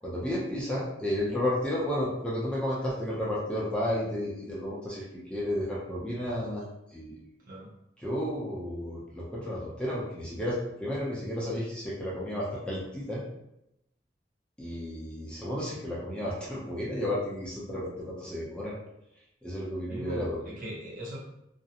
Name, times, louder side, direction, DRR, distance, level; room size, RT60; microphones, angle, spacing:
voice 1, 0.0-7.1 8.0-13.2 14.6-18.7 19.4-20.4, left 1 dB, 5° left, -6 dB, 0.5 m, -32 dB
voice 2, 19.9-21.2, equal, 45° right, -4 dB, 0.7 m, -40 dB
2.5 x 2.0 x 2.7 m, 0.84 s
head